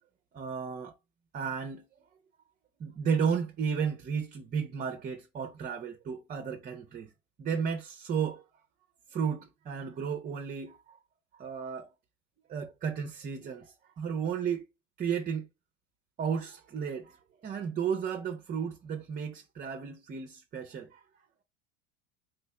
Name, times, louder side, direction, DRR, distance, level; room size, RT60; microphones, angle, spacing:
voice 1, 0.3-0.9 1.3-1.8 2.8-7.1 7.4-8.4 9.1-11.0 11.3-11.9 12.5-14.7 15.0-15.5 16.2-21.0, right 6 dB, 20° right, 0.6 m, -33 dB
4.5 x 3.1 x 2.9 m
figure-of-eight pair, 80°, 39 cm